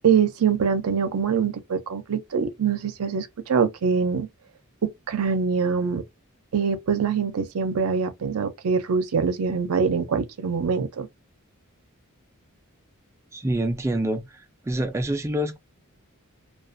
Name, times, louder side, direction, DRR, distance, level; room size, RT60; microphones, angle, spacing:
voice 1, 0.0-4.3 4.8-6.0 6.5-11.1, right 6 dB, 90° right, 0.5 m, -24 dB
voice 2, 13.3-14.4 14.6-15.6, right 1 dB, 15° right, 0.3 m, -26 dB
2.4 x 2.3 x 2.5 m
head